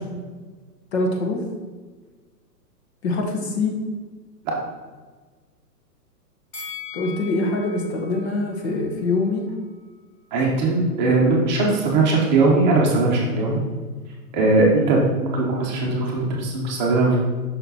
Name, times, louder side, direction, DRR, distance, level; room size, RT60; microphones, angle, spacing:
voice 1, 0.9-1.4 3.0-3.7 6.9-9.5, left 2 dB, 40° left, 2 dB, 1.0 m, -24 dB
Bell, 6.5-9.7 10.1-10.2, left 6 dB, 20° left, 1.2 m, -40 dB
voice 2, 10.3-13.6 14.3-17.2, right 3 dB, 30° right, -2 dB, 1.0 m, -19 dB
5.9 x 4.2 x 4.1 m, 1.4 s
hypercardioid pair, 160°, 48 cm